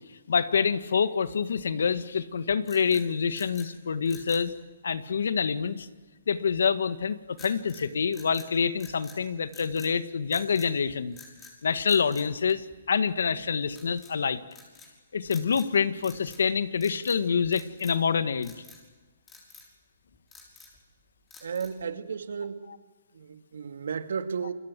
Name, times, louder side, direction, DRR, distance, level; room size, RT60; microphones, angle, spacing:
voice 1, 0.3-4.5 4.8-5.9 6.3-11.2 11.6-14.4 15.1-18.5, left 6 dB, 75° left, 12 dB, 1.7 m, -26 dB
sound 1, 2.6-3.7 4.0-4.5 7.4-7.9 8.1-9.2 9.5-9.9 10.3-10.7 11.1-11.6 11.9-13.1 13.7-14.1 14.5-14.9 15.3-15.7 16.0-16.5 16.7-17.2 17.5-18.1 18.4-18.8 19.3-19.7 20.1-20.8 21.3-21.8, left 4 dB, 10° left, 6.1 m, -50 dB
voice 2, 21.4-22.7 23.1-24.5, right 6 dB, 75° right, 8 dB, 2.3 m, -33 dB
29.0 x 23.0 x 7.7 m, 1.3 s
hypercardioid pair, 155°, 0 cm